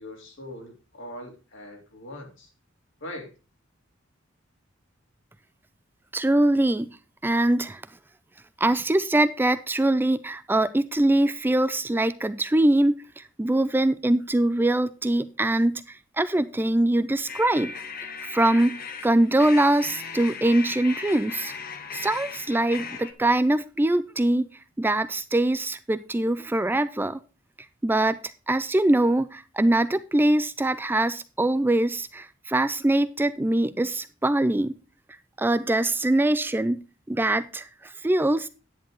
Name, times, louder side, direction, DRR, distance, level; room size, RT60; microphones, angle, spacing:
voice 1, 0.0-2.5 3.0-3.3, left 1 dB, 65° left, 3.4 m, -41 dB
voice 2, 6.1-7.0 7.2-7.8 8.6-17.7 18.2-21.5 21.9-24.5 24.8-27.2 27.8-34.8 35.4-36.8 37.1-38.5, right 1 dB, 10° right, 0.4 m, -23 dB
sound 1, 17.3-23.1, left 5 dB, 50° left, 1.2 m, -37 dB
10.5 x 9.2 x 3.0 m
head